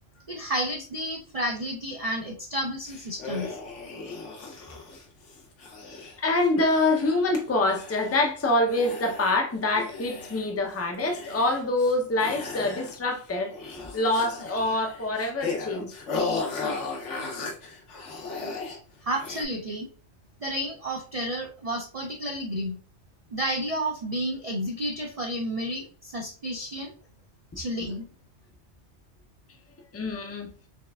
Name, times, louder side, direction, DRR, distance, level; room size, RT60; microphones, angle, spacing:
voice 1, 0.3-3.6 19.0-19.9 20.4-22.8 23.3-26.9 27.6-28.1, equal, 55° right, 0.4 m, -31 dB
sound 1, 2.9-7.4 7.7-8.3 8.7-9.4 9.8-10.7 11.0-11.9 12.2-13.2 13.5-18.8 19.2-19.4, left 3 dB, 80° left, 1.3 m, -36 dB
voice 2, 6.2-13.5 13.9-16.0 29.9-30.5, left 2 dB, 20° left, 0.4 m, -25 dB
4.3 x 3.2 x 2.3 m
omnidirectional pair, 1.2 m